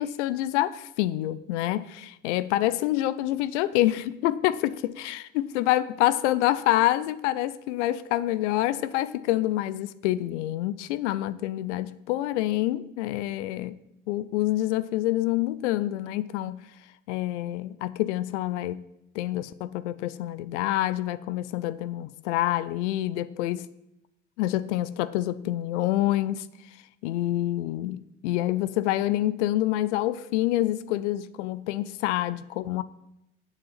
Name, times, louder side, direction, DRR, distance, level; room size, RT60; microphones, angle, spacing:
voice 1, 0.0-13.8 14.1-16.6 17.1-18.8 19.1-23.7 24.4-26.5 27.0-32.8, left 15 dB, 70° left, 0.5 m, -27 dB
8.0 x 6.9 x 7.3 m
figure-of-eight pair, 55°, 36 cm